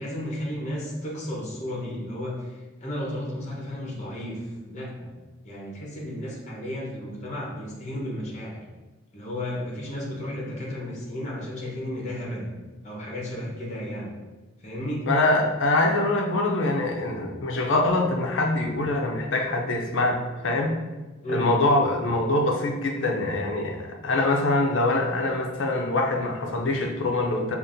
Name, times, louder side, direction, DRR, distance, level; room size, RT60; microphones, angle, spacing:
voice 1, 0.0-5.1 5.4-8.6 9.1-12.5 12.8-14.2 14.6-15.1 21.2-21.5, left 1 dB, 35° left, -3 dB, 1.0 m, -33 dB
voice 2, 15.1-20.8 21.3-27.6, left 2 dB, 65° left, 1 dB, 0.6 m, -24 dB
5.2 x 2.5 x 2.6 m, 1.2 s
head